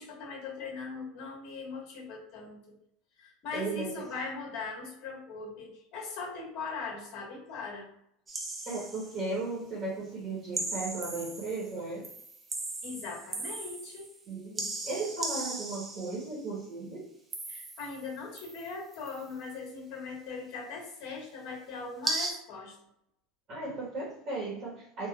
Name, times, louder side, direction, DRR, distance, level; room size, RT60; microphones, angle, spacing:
voice 1, 0.0-2.6 3.2-7.9 12.8-14.1 17.5-22.8, left 4 dB, 55° left, -2 dB, 1.4 m, -40 dB
voice 2, 3.5-4.0 8.7-12.1 14.3-17.0 23.5-25.1, right 3 dB, 40° right, -4 dB, 1.2 m, -36 dB
sound 1, 8.3-9.3 10.5-11.8 12.0-14.2 14.6-16.3 17.3-18.1 18.4-19.2 22.0-22.3, right 2 dB, 20° right, 0.6 m, -37 dB
3.7 x 2.4 x 2.3 m, 0.74 s
supercardioid pair, 125°, 0 cm